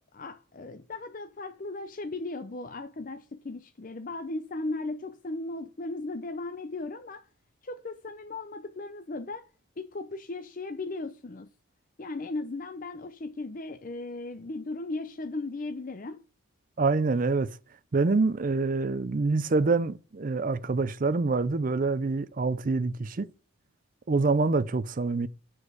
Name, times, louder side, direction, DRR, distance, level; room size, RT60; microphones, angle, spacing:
voice 1, 0.1-7.3 7.6-9.4 9.8-11.5 12.0-16.2, left 2 dB, 40° left, 0.5 m, -37 dB
voice 2, 16.8-17.5 17.9-23.3 24.1-25.3, right 3 dB, 40° right, 0.4 m, -26 dB
7.5 x 6.3 x 4.9 m
head